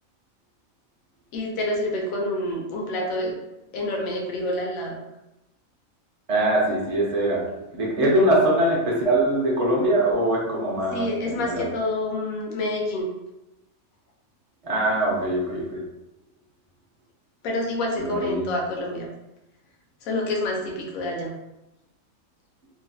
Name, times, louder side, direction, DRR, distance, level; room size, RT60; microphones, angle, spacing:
voice 1, 1.3-3.3 3.7-5.0 8.0-8.1 10.9-13.1 17.4-19.1 20.0-21.3, left 1 dB, 85° left, 0 dB, 1.1 m, -27 dB
voice 2, 6.3-7.4 7.7-11.7 14.6-15.8 18.0-18.5, right 1 dB, 40° right, -4 dB, 0.5 m, -22 dB
2.8 x 2.2 x 2.6 m, 0.93 s
omnidirectional pair, 1.4 m